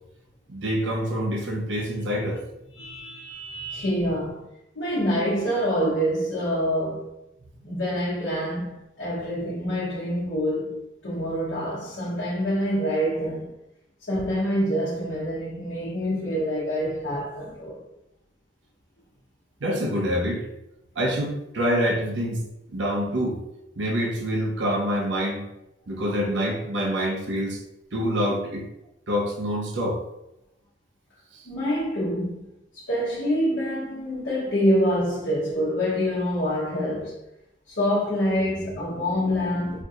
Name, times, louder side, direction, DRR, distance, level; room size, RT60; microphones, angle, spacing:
voice 1, 0.5-2.4 19.6-20.5 21.0-22.4 22.7-23.4 23.8-25.5 25.9-27.6 27.9-28.7 29.1-30.0 31.3-31.5, equal, 70° right, 0.7 m, -26 dB
voice 2, 2.8-4.5 4.7-7.1 7.6-13.5 14.1-17.8 31.4-32.4 32.7-37.2 37.7-39.8, equal, 70° left, 0.9 m, -26 dB
4.3 x 2.7 x 2.4 m
head